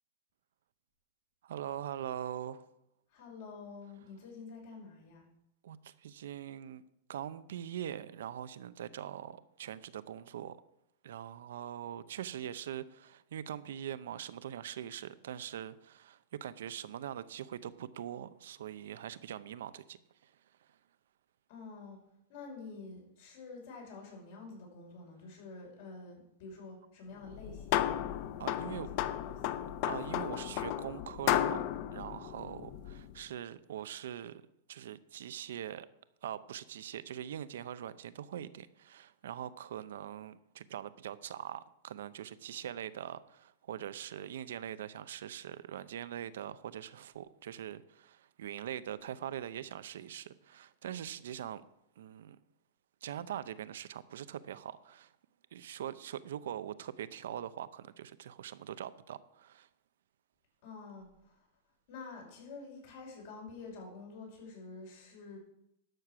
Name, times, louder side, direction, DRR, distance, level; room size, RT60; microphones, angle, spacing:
voice 1, 1.4-2.7 5.6-6.8 7.1-10.6 11.0-20.0 20.2-20.3 28.4-28.9 29.8-31.6 31.9-34.4 34.7-35.9 36.2-51.6 52.0-52.4 53.0-55.1 55.5-59.7, right 10 dB, 80° right, 0.7 m, -42 dB
voice 2, 3.1-5.3 21.5-22.0 22.3-27.8 28.5-29.6 60.6-61.4 61.9-65.4, left 4 dB, 60° left, 5.4 m, -48 dB
sound 1, 27.3-33.1, left 12 dB, 45° left, 0.6 m, -34 dB
12.5 x 6.6 x 6.0 m
supercardioid pair, 150°, 0 cm